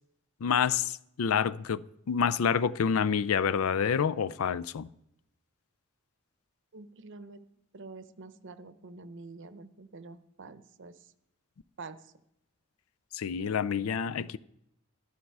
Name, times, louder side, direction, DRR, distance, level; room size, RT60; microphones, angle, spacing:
voice 1, 0.4-1.8 2.1-4.9 13.1-14.4, left 7 dB, 75° left, 0.4 m, -28 dB
voice 2, 6.7-7.4 7.7-11.0 11.8-12.0, right 3 dB, 60° right, 0.7 m, -47 dB
12.0 x 12.0 x 4.7 m
head